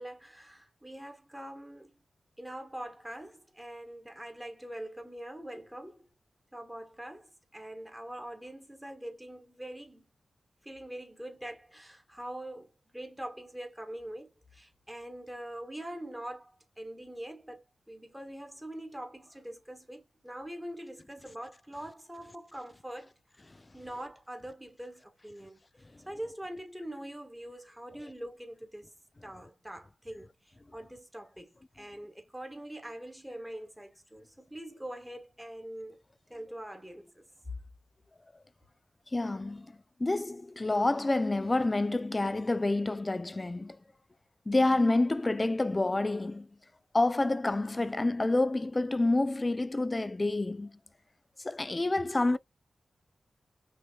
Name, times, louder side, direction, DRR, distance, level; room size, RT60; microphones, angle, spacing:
voice 1, 0.0-1.9 2.4-6.1 6.5-7.3 7.5-10.1 10.6-16.5 16.8-17.6 17.9-23.1 23.7-25.6 26.1-28.9 29.2-36.0 36.3-37.2, right 1 dB, 5° right, 1.4 m, -43 dB
voice 2, 39.1-39.7 40.0-43.8 44.5-46.5 46.9-50.7 51.4-52.4, left 2 dB, 25° left, 0.3 m, -28 dB
6.0 x 2.8 x 2.3 m
wide cardioid pair, 100°, 0 cm